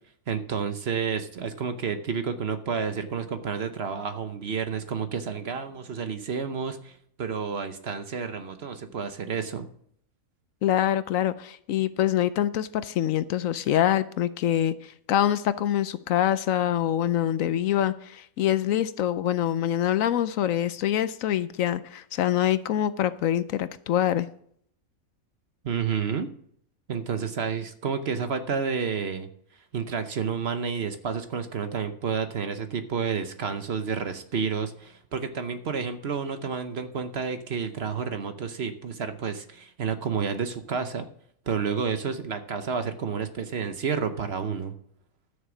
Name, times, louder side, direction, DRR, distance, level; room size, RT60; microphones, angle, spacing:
voice 1, 0.3-9.7 25.6-26.3 26.9-29.3 29.7-41.1 41.5-44.7, right 6 dB, 50° right, 9 dB, 1.0 m, -30 dB
voice 2, 10.6-24.3, left 11 dB, 70° left, 14 dB, 1.0 m, -25 dB
13.0 x 6.6 x 6.0 m, 0.65 s
omnidirectional pair, 1.5 m